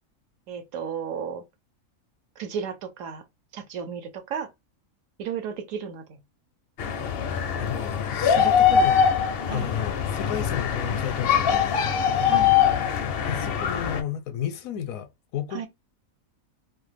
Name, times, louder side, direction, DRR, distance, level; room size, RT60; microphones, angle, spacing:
voice 1, 0.5-1.4 2.4-3.2 3.5-4.5 5.2-6.2 8.4-8.5 9.5-9.7 12.3-12.5 15.5-15.7, right 7 dB, 70° right, 1.0 m, -33 dB
sound 1, 6.8-14.0, left 8 dB, 65° left, 0.6 m, -23 dB
voice 2, 7.6-9.1 9.5-11.8 13.2-15.7, left 9 dB, 80° left, 1.0 m, -33 dB
2.6 x 2.2 x 3.2 m
omnidirectional pair, 1.5 m